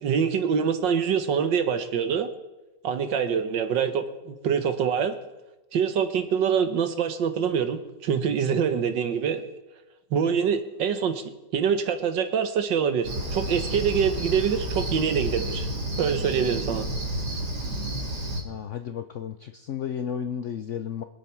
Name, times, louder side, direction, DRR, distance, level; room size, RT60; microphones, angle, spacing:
voice 1, 0.0-2.3 2.8-5.2 5.7-9.4 10.1-11.2 11.5-15.7 16.0-16.9, right 7 dB, 85° right, 9 dB, 1.8 m, -25 dB
Cricket, 13.0-18.4, right 1 dB, 70° right, 2.8 m, -31 dB
voice 2, 18.4-21.0, left 8 dB, 60° left, 8 dB, 0.8 m, -33 dB
24.5 x 8.4 x 4.5 m, 1.1 s
omnidirectional pair, 1.9 m